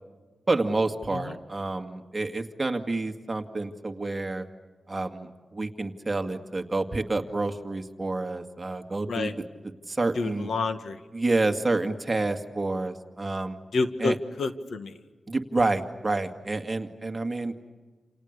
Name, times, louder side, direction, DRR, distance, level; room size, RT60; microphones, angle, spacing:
voice 1, 0.5-4.5 4.9-9.3 9.9-10.5 11.1-13.6 14.0-14.2 15.3-17.5, right 2 dB, 20° right, 5 dB, 2.1 m, -28 dB
voice 2, 10.2-11.0 13.7-14.9, left 3 dB, 80° left, 8 dB, 1.8 m, -29 dB
29.0 x 29.0 x 6.7 m, 1.3 s
wide cardioid pair, 145°, 0 cm